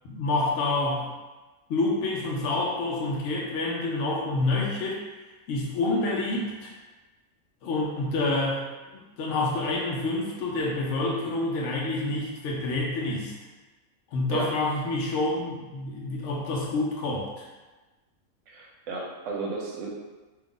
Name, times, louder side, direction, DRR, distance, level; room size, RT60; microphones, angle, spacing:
voice 1, 0.0-1.1 1.7-5.0 5.5-6.7 7.6-8.6 8.9-13.3 14.1-17.5, left 2 dB, 65° left, -3 dB, 0.9 m, -28 dB
voice 2, 18.5-19.9, right 4 dB, 65° right, -2 dB, 1.0 m, -33 dB
2.7 x 2.4 x 3.7 m, 1.2 s
omnidirectional pair, 1.5 m